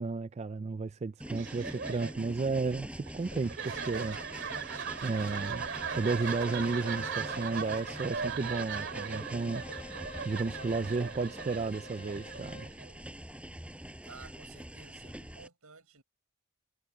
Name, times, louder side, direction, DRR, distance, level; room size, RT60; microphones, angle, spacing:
voice 1, 0.0-4.2 5.0-5.6 6.0-9.9 10.2-12.7, right 4 dB, 30° right, 0.3 m, -33 dB
Train, 1.2-15.5, equal, 5° right, 4.9 m, -45 dB
sound 1, 1.3-13.0, right 6 dB, 55° right, 2.4 m, -39 dB
Bowed string instrument, 5.8-12.7, left 3 dB, 25° left, 1.3 m, -50 dB
voice 2, 14.0-16.0, right 5 dB, 85° right, 4.8 m, -53 dB
head